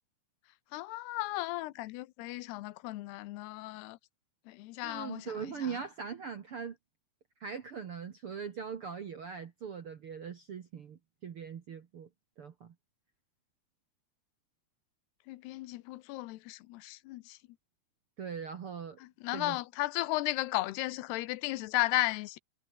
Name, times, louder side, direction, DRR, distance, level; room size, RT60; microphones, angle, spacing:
voice 1, 0.7-4.0 4.5-5.3 15.3-17.4 19.2-22.4, left 18 dB, 90° left, 2.9 m, -35 dB
voice 2, 4.8-6.8 7.4-12.1 12.4-12.7 18.2-19.0 19.3-19.6, right 6 dB, 60° right, 1.5 m, -41 dB
omnidirectional pair, 4.6 m